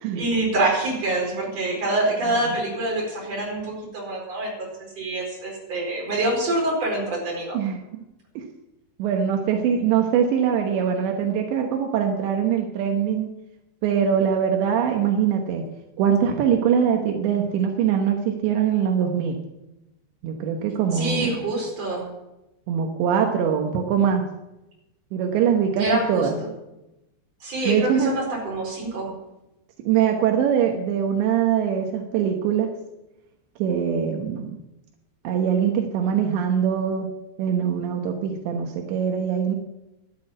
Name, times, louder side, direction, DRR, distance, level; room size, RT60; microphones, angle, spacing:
voice 1, 0.1-4.7 5.0-7.6 20.9-22.1 25.8-26.5 27.4-29.1, right 2 dB, 35° right, -1 dB, 5.4 m, -26 dB
voice 2, 9.0-13.3 13.8-15.6 16.0-19.4 20.2-21.4 22.7-24.3 25.1-26.4 27.7-28.1 29.8-32.7 33.6-34.6 35.3-37.1 37.4-39.6, right 8 dB, 80° right, 3 dB, 3.4 m, -22 dB
12.0 x 8.6 x 9.7 m, 0.95 s
omnidirectional pair, 5.0 m